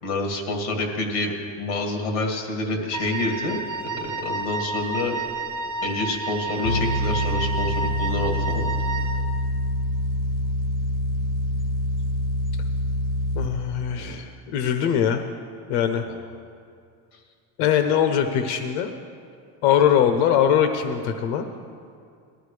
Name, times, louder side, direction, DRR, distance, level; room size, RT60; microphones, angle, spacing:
voice 1, 0.0-3.6 4.0-5.1 5.8-8.7 16.1-16.2, left 2 dB, 45° left, 2 dB, 2.1 m, -27 dB
Wind instrument woodwind instrument, 2.9-9.3, right 3 dB, 35° right, 1.2 m, -31 dB
sound 1, 6.6-13.5, left 1 dB, 25° left, 0.4 m, -25 dB
voice 2, 13.3-15.3 15.7-16.1 17.6-18.9 19.6-21.4, left 9 dB, 60° left, 7 dB, 0.8 m, -21 dB
19.0 x 12.5 x 3.3 m, 2.3 s
cardioid pair, 180°, 39 cm